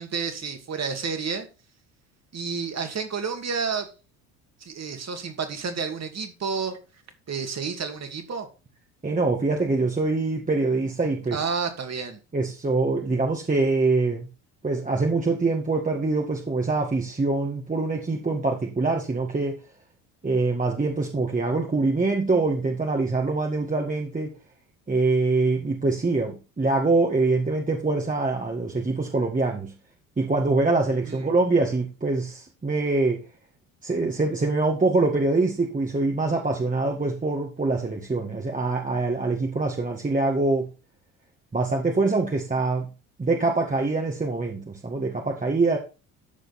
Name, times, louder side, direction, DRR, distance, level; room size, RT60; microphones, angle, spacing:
voice 1, 0.0-1.5 2.3-3.9 4.6-6.8 7.3-8.5 11.3-12.2 31.1-31.3, right 5 dB, 40° right, 2.6 m, -30 dB
voice 2, 9.0-11.4 12.3-14.3 14.6-19.6 20.2-24.3 24.9-29.7 30.2-33.2 33.8-40.7 41.5-42.9 43.2-45.8, right 3 dB, 20° right, 2.0 m, -24 dB
14.0 x 5.1 x 4.4 m
hypercardioid pair, 65°, 42 cm